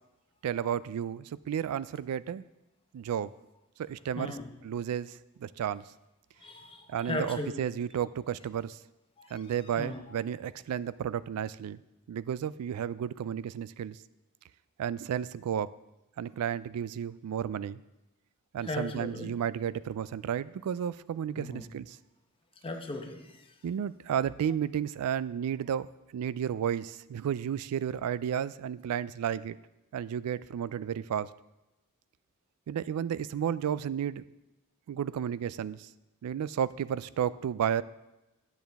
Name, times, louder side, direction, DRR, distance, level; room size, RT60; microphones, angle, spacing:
voice 1, 0.4-2.5 2.9-3.3 3.8-4.4 4.6-5.8 6.9-8.8 9.3-11.8 12.1-14.0 14.8-15.7 16.2-17.8 18.5-22.0 23.6-25.9 26.1-29.6 29.9-31.3 32.7-34.2 34.9-35.9 36.2-37.8, right 9 dB, 80° right, 18 dB, 0.3 m, -32 dB
voice 2, 4.2-4.5 6.4-7.7 9.2-9.5 9.8-10.0 18.6-19.3 21.4-21.7 22.6-23.5, left 2 dB, 25° left, 3 dB, 0.9 m, -37 dB
10.0 x 7.1 x 3.5 m, 0.98 s
head